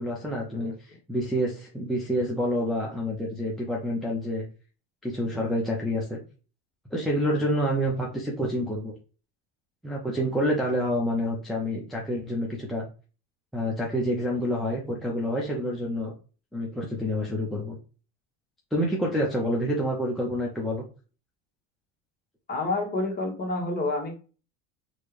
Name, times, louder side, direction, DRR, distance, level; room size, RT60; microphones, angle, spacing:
voice 1, 0.0-4.4 5.0-6.2 6.9-8.9 9.8-12.8 13.5-16.1 16.5-17.8 18.7-20.8, equal, ahead, -4 dB, 0.6 m, -28 dB
voice 2, 22.5-24.1, left 2 dB, 25° left, 0 dB, 1.3 m, -28 dB
4.3 x 2.3 x 3.2 m, 0.36 s
supercardioid pair, 120°, 38 cm